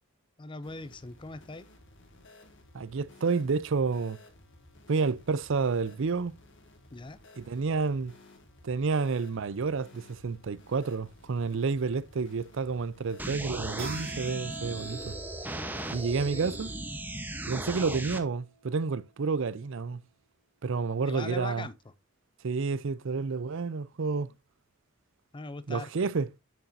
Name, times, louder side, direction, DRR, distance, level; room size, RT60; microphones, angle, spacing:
voice 1, 0.4-1.6 6.9-7.2 16.3-16.4 21.0-21.7 25.3-25.9, left 3 dB, 25° left, 0.5 m, -40 dB
sound 1, 0.6-16.7, left 2 dB, 60° left, 1.9 m, -55 dB
voice 2, 2.7-4.2 4.9-6.3 7.4-8.1 8.6-15.1 15.9-16.7 17.5-20.0 20.6-21.7 22.4-24.3 25.7-26.3, right 4 dB, 60° right, 0.5 m, -30 dB
sound 2, 13.2-18.2, right 1 dB, 10° right, 0.9 m, -37 dB
Keyboard (musical), 13.8-19.1, right 5 dB, 80° right, 3.7 m, -47 dB
8.2 x 7.1 x 2.6 m
head